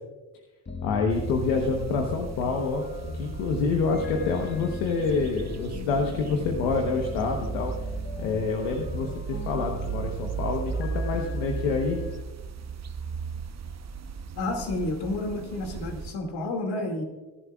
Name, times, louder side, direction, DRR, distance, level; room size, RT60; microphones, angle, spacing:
sound 1, 0.7-12.2, left 3 dB, 25° left, 1.4 m, -38 dB
voice 1, 0.8-2.8 3.1-7.7 8.2-12.0, left 4 dB, 85° left, 2 dB, 1.2 m, -27 dB
sound 2, 1.1-16.1, right 5 dB, 40° right, 0.9 m, -36 dB
voice 2, 14.3-17.0, left 2 dB, 70° left, 3 dB, 2.4 m, -30 dB
22.0 x 11.0 x 2.4 m, 1.2 s
hypercardioid pair, 50°, 41 cm